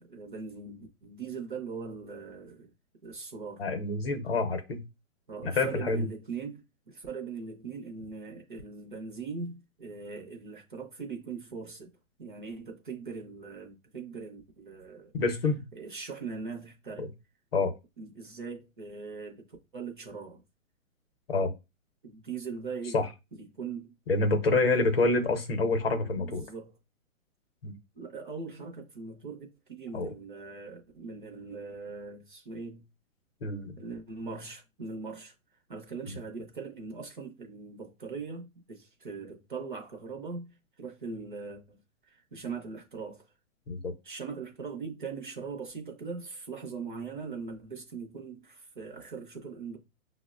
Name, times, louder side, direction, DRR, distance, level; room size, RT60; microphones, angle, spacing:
voice 1, 0.0-2.7 3.0-3.6 5.3-11.9 12.2-15.1 15.7-17.1 18.0-19.5 19.7-20.4 22.0-23.1 23.3-23.9 26.2-26.7 27.9-32.8 33.8-35.3 35.7-40.5 40.8-43.3 44.0-49.8, right 5 dB, 40° right, 0.6 m, -40 dB
voice 2, 3.6-4.8 5.4-6.1 15.1-15.6 17.0-17.1 17.5-17.7 21.3-21.5 22.9-23.1 24.1-26.4 27.6-27.7 29.9-30.1 33.4-33.7 36.1-36.2 43.7-43.9, left 3 dB, 45° left, 0.7 m, -27 dB
5.6 x 2.1 x 2.3 m
hypercardioid pair, 180°, 41 cm